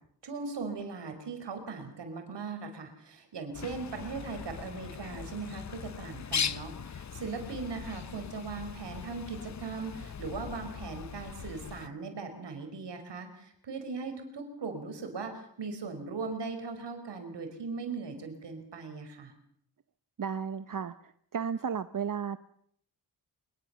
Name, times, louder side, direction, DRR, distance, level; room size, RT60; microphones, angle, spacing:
voice 1, 0.2-19.3, right 4 dB, 80° right, 6 dB, 5.4 m, -39 dB
Bird, 3.5-11.9, left 7 dB, 40° left, 0.9 m, -39 dB
voice 2, 20.2-22.4, right 7 dB, 50° right, 13 dB, 1.0 m, -34 dB
24.0 x 23.5 x 7.1 m, 0.68 s
cardioid pair, 70°, 42 cm